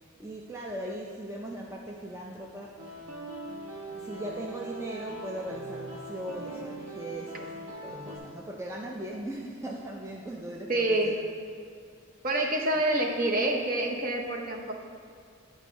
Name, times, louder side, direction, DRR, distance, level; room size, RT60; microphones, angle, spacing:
voice 1, 0.2-2.9 3.9-11.2, right 1 dB, 15° right, -2 dB, 0.5 m, -39 dB
sound 1, 2.8-8.2, right 1 dB, 90° right, 1.6 m, -41 dB
voice 2, 10.7-11.1 12.2-14.7, right 1 dB, 45° right, 1 dB, 0.9 m, -27 dB
10.5 x 3.7 x 5.1 m, 2.3 s
head